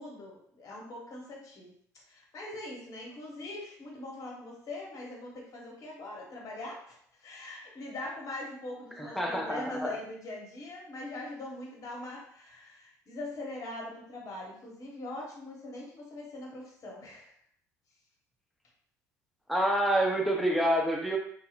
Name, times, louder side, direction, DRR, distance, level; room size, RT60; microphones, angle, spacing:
voice 1, 0.0-1.7 2.1-17.3, left 2 dB, 40° left, -2 dB, 1.0 m, -42 dB
voice 2, 9.0-10.0 19.5-21.2, right 1 dB, ahead, 0 dB, 0.6 m, -27 dB
2.8 x 2.3 x 2.4 m, 0.63 s
hypercardioid pair, 60°, 8 cm